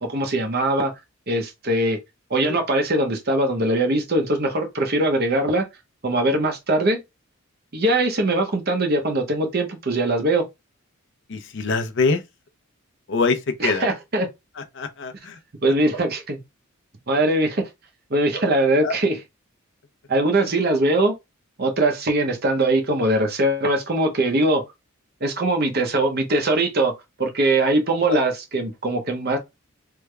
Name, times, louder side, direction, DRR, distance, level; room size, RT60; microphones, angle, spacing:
voice 1, 0.0-0.9 1.3-2.0 2.3-5.7 6.0-7.0 7.7-10.5 13.6-14.3 15.6-16.4 17.1-17.7 18.1-19.2 20.1-21.1 21.6-24.6 25.2-26.9 27.2-29.4, right 1 dB, 45° right, 0.8 m, -21 dB
voice 2, 11.3-12.2 13.1-13.9 14.7-15.4 18.8-19.0 28.1-28.2, left 4 dB, 55° left, 0.6 m, -24 dB
3.4 x 2.2 x 3.3 m
head